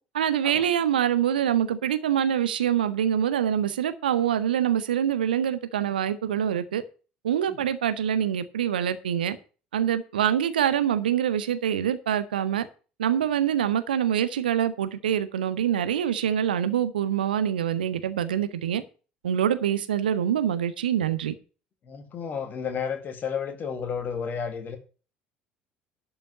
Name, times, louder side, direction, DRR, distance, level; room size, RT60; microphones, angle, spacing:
voice 1, 0.1-6.8 7.2-9.4 9.7-12.7 13.0-18.8 19.2-21.3, right 9 dB, 70° right, 0.8 m, -25 dB
voice 2, 21.8-24.8, left 6 dB, 35° left, 2.1 m, -32 dB
11.5 x 5.6 x 7.4 m
figure-of-eight pair, 60°, 5 cm